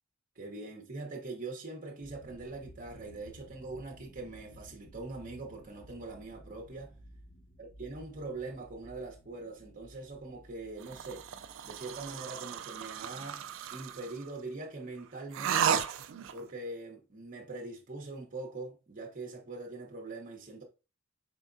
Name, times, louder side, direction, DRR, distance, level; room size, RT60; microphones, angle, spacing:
voice 1, 0.3-7.0 7.6-11.2 11.6-13.4 13.7-15.8 16.3-20.6, right 3 dB, 40° right, 1.0 m, -42 dB
sound 1, 2.0-14.2, equal, 40° left, 1.0 m, -56 dB
sound 2, 10.8-14.2 15.3-16.4, right 8 dB, 65° right, 0.4 m, -34 dB
4.5 x 3.5 x 2.6 m
head